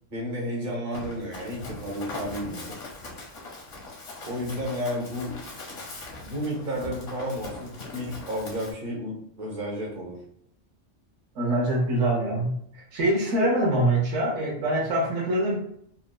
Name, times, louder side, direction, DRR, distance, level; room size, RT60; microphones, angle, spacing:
voice 1, 0.1-2.8 4.2-5.4 6.2-10.2, equal, 45° right, -2 dB, 1.1 m, -32 dB
Run, 0.9-8.7, left 2 dB, 75° left, 1.3 m, -41 dB
voice 2, 11.3-15.6, right 1 dB, 75° right, -4 dB, 1.1 m, -24 dB
3.8 x 2.2 x 2.2 m, 0.67 s
omnidirectional pair, 1.3 m